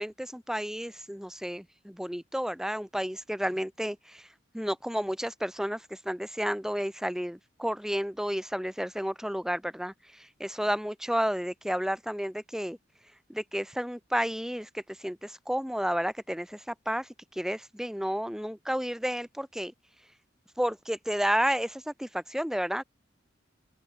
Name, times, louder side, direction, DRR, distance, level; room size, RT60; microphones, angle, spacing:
voice 1, 0.0-4.2 4.5-9.9 10.4-12.8 13.3-19.7 20.6-22.8, equal, 5° right, 4.8 m, -31 dB
open air
head